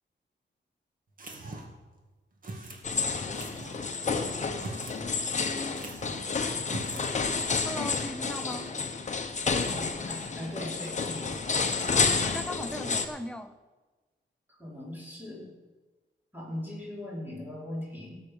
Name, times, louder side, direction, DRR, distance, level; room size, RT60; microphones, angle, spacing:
sound 1, 1.2-1.8 2.4-2.8 3.3-3.8 4.5-5.0 5.3-5.4 5.8-6.3 6.6-7.1, right 2 dB, 45° right, 2.0 m, -41 dB
sound 2, 2.8-13.1, left 4 dB, 40° left, 1.0 m, -30 dB
voice 1, 7.6-8.7 12.0-13.6, equal, 5° left, 0.6 m, -38 dB
voice 2, 9.7-11.3 11.8-12.2 14.5-15.5 16.3-18.2, left 1 dB, 10° right, 4.8 m, -39 dB
18.0 x 7.7 x 5.4 m
wide cardioid pair, 150°, 20 cm